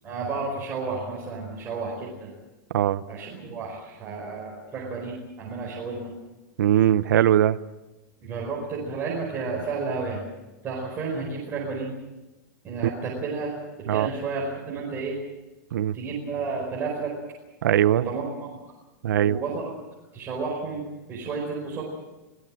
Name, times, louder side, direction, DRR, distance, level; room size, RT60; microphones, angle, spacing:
voice 1, 0.0-2.3 3.1-6.1 8.2-10.3 10.6-11.9 12.6-13.5 13.9-15.2 15.9-17.1 17.9-18.2 19.2-19.7 20.1-20.8 21.1-21.8, right 4 dB, 20° right, -4 dB, 4.8 m, -31 dB
voice 2, 6.6-7.6 13.9-14.1 15.7-16.0 17.6-18.1 19.0-19.4, right 11 dB, 85° right, 14 dB, 0.8 m, -20 dB
26.0 x 17.5 x 7.6 m, 1.1 s
supercardioid pair, 165°, 10 cm